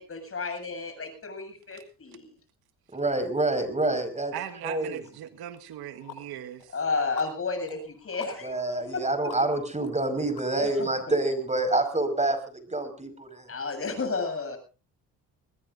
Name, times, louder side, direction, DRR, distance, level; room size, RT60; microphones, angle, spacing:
voice 1, 0.0-2.3 6.7-8.5 8.9-9.3 10.6-10.9 13.5-14.6, left 4 dB, 35° left, 7.8 m, -32 dB
voice 2, 2.9-4.3 4.6-5.0 8.4-13.5, right 2 dB, 20° right, 5.3 m, -27 dB
voice 3, 4.3-6.8, right 11 dB, 75° right, 1.6 m, -39 dB
sound 1, 5.0-5.1 5.6-10.9, left 9 dB, 75° left, 5.6 m, -49 dB
23.5 x 20.0 x 2.6 m
supercardioid pair, 75°, 38 cm